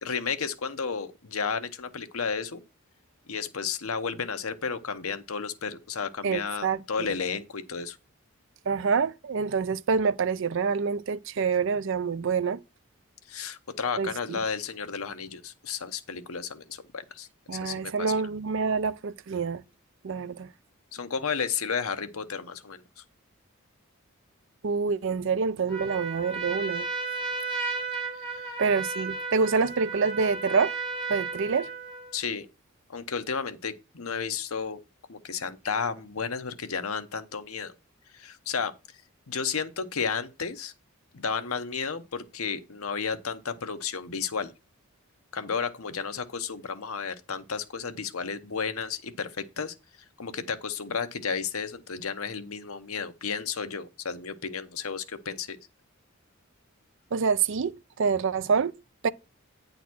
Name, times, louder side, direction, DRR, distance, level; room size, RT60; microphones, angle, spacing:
voice 1, 0.0-2.6 3.3-8.0 13.3-18.1 20.9-23.0 28.1-28.6 32.1-32.5 32.9-34.8 35.1-37.7 38.1-38.7 39.3-40.7 41.1-44.5 45.3-49.7 50.2-55.6, left 6 dB, 80° left, 1.0 m, -33 dB
voice 2, 6.2-7.1 8.7-12.6 14.0-14.4 17.5-19.6 20.0-20.5 24.6-26.9 28.6-30.8 31.1-31.7 57.1-58.7 59.0-59.1, right 5 dB, 60° right, 0.5 m, -26 dB
Trumpet, 25.7-32.1, right 4 dB, 25° right, 2.7 m, -34 dB
9.4 x 4.0 x 6.1 m
head